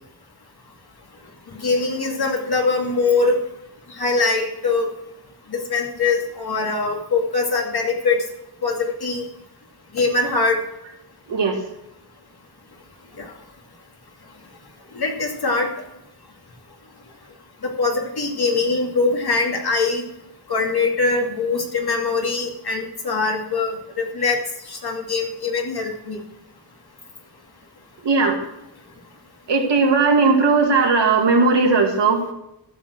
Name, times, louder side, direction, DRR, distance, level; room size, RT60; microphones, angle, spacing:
voice 1, 1.6-3.4 4.0-4.9 5.5-8.2 8.6-9.2 9.9-10.6 13.2-13.3 15.0-15.7 17.6-20.0 20.5-24.4 24.7-26.2, left 3 dB, 65° left, 2 dB, 2.5 m, -22 dB
voice 2, 28.0-28.4 29.5-32.2, right 4 dB, 90° right, 2 dB, 2.2 m, -17 dB
13.5 x 6.5 x 6.3 m, 0.88 s
wide cardioid pair, 90°, 41 cm